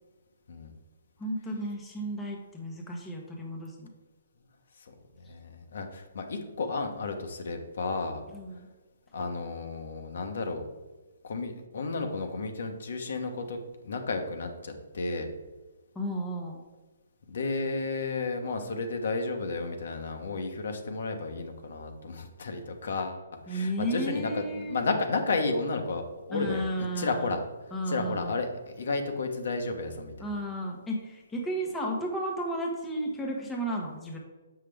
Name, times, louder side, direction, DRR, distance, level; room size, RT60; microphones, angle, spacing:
voice 1, 1.2-3.9 8.3-8.7 15.9-16.6 23.5-24.9 26.3-27.3 27.7-28.4 30.2-34.2, right 1 dB, 5° left, -2 dB, 1.1 m, -33 dB
voice 2, 5.3-8.2 9.1-10.6 11.2-15.3 17.3-27.4 27.9-30.3, left 3 dB, 70° left, 4 dB, 1.1 m, -32 dB
7.4 x 5.8 x 3.5 m, 1.2 s
hypercardioid pair, 160°, 0 cm